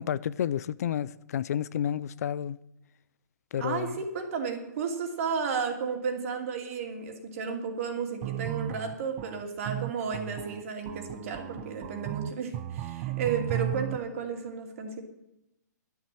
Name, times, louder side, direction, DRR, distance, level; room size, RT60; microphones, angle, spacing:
voice 1, 0.0-2.6 3.5-4.0, left 9 dB, 60° left, 0.5 m, -31 dB
voice 2, 3.6-15.0, right 5 dB, 50° right, 2.7 m, -33 dB
sound 1, 8.2-14.0, right 14 dB, 30° right, 0.5 m, -35 dB
11.5 x 7.2 x 8.9 m
hypercardioid pair, 150°, 10 cm